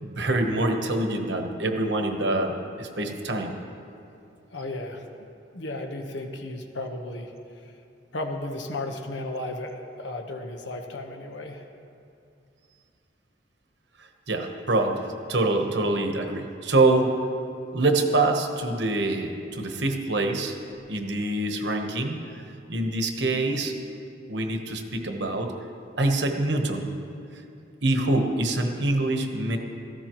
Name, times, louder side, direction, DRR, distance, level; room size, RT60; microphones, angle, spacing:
voice 1, 0.0-3.5 14.3-15.0 15.3-17.1 17.7-20.5 20.9-22.2 22.7-23.7 24.3-25.5 26.0-26.9 27.8-29.6, right 2 dB, 70° right, 4 dB, 1.1 m, -25 dB
voice 2, 4.5-5.3 5.5-7.7 8.1-11.7, left 2 dB, 75° left, 4 dB, 1.1 m, -34 dB
16.5 x 14.0 x 3.1 m, 2.6 s
head